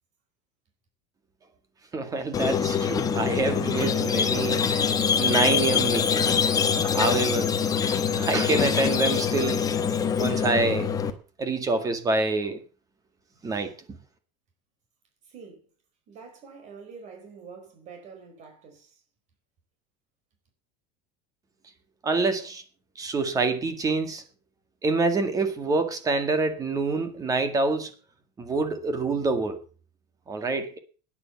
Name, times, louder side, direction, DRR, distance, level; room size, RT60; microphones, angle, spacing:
voice 1, 1.9-6.6 6.9-7.7 8.1-9.7 10.2-10.9 11.4-12.6 13.4-13.7 22.0-22.6 23.0-24.2 24.8-27.9 28.4-29.6 30.3-30.8, right 3 dB, 15° right, 2.0 m, -26 dB
Squeak, 2.3-11.1, left 7 dB, 15° left, 1.2 m, -24 dB
voice 2, 15.2-15.7 16.1-19.0, right 5 dB, 35° right, 4.8 m, -46 dB
12.5 x 10.5 x 7.0 m
cardioid pair, 165°, 21 cm